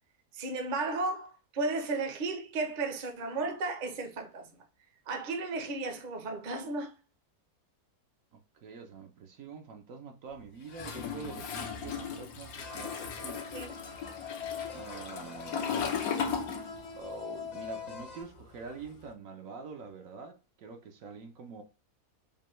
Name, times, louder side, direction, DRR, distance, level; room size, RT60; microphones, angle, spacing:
voice 1, 0.3-4.5 5.1-6.9 13.5-13.7, right 3 dB, 40° right, 0.8 m, -34 dB
voice 2, 8.3-13.5 14.7-16.2 17.0-21.6, right 4 dB, 65° right, 1.1 m, -45 dB
Toilet flush, 10.7-17.2 17.4-19.0, left 6 dB, 75° left, 1.2 m, -37 dB
sound 1, 12.6-18.2, left 6 dB, 55° left, 0.4 m, -43 dB
5.2 x 2.2 x 3.0 m
omnidirectional pair, 1.6 m